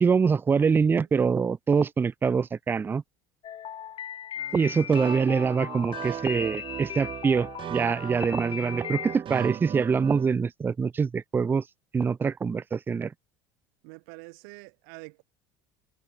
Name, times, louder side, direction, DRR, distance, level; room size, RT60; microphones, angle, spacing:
voice 1, 0.0-3.0 4.5-11.6 11.9-13.1, right 5 dB, 15° right, 0.3 m, -24 dB
sound 1, 3.4-9.2, left 10 dB, 40° left, 2.5 m, -38 dB
voice 2, 4.4-5.3 13.8-15.2, right 37 dB, 65° right, 1.4 m, -47 dB
sound 2, 4.9-10.3, right 10 dB, 40° right, 2.3 m, -37 dB
hypercardioid pair, 75°, 13 cm